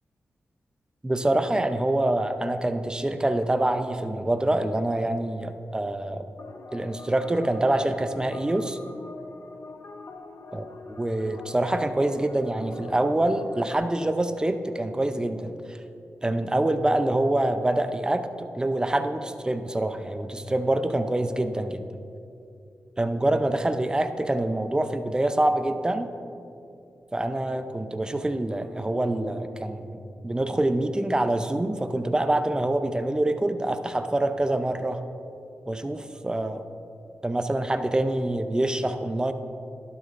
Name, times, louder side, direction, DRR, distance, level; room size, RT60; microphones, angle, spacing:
voice 1, 1.0-6.3 6.7-8.8 10.5-10.7 11.0-15.8 16.2-21.8 23.0-26.1 27.1-30.0 30.2-35.0 35.7-36.6 37.2-39.3, right 1 dB, 15° right, 9 dB, 0.5 m, -25 dB
sound 1, 6.4-13.8, left 3 dB, 55° left, 0.6 m, -44 dB
12.0 x 9.6 x 2.5 m, 2.6 s
cardioid pair, 70°, 5 cm